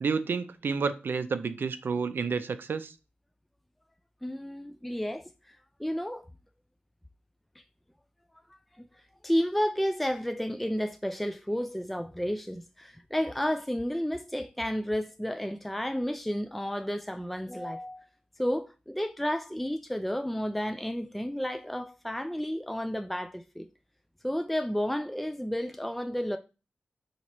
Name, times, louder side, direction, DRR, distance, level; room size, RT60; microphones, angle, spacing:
voice 1, 0.0-2.9, right 5 dB, 70° right, 0.4 m, -30 dB
voice 2, 4.2-6.3 8.8-8.9 9.2-18.0 18.4-23.7 24.2-26.4, equal, 5° left, 0.3 m, -31 dB
4.4 x 2.9 x 4.1 m
cardioid pair, 50°, 4 cm